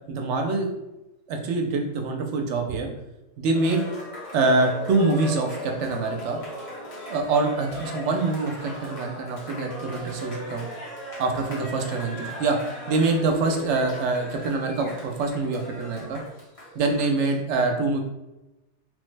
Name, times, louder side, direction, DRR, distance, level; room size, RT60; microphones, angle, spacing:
voice 1, 0.1-0.7 1.3-2.9 3.4-3.8 4.3-6.4 7.1-10.6 11.2-12.6 12.9-16.2 16.8-18.0, right 3 dB, 80° right, 3 dB, 0.9 m, -25 dB
Cheering, 3.5-17.4, equal, 35° left, 0.8 m, -38 dB
3.2 x 2.1 x 3.2 m, 0.96 s
omnidirectional pair, 1.2 m